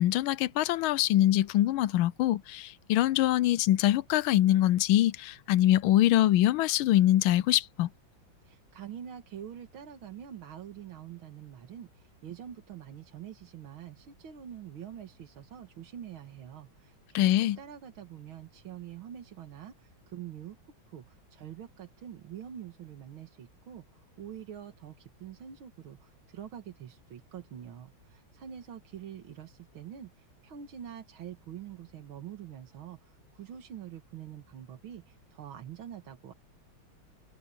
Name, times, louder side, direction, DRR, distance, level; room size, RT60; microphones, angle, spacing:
voice 1, 0.0-7.9 17.1-17.6, left 13 dB, 85° left, 1.4 m, -24 dB
voice 2, 8.4-20.6 20.9-36.3, right 9 dB, 90° right, 2.3 m, -45 dB
omnidirectional pair, 2.2 m